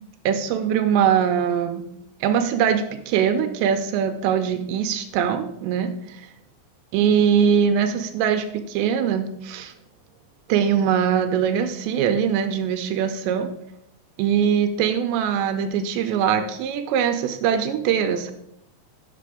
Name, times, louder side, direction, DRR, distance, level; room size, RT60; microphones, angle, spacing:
voice 1, 0.3-1.8 2.2-6.2 6.9-9.7 10.5-13.5 14.2-18.3, right 8 dB, 85° right, 7 dB, 2.9 m, -22 dB
9.4 x 6.8 x 4.8 m, 0.76 s
omnidirectional pair, 5.2 m